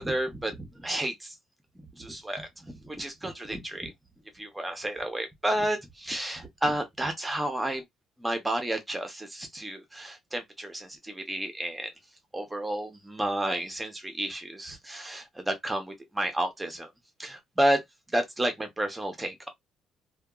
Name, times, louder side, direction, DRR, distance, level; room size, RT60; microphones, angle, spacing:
voice 1, 0.0-1.3 1.9-3.9 4.3-7.8 8.2-11.9 12.3-16.9 17.2-17.8 18.1-19.5, right 1 dB, 10° right, 0.7 m, -31 dB
2.8 x 2.2 x 2.3 m
cardioid pair, 155°, 0 cm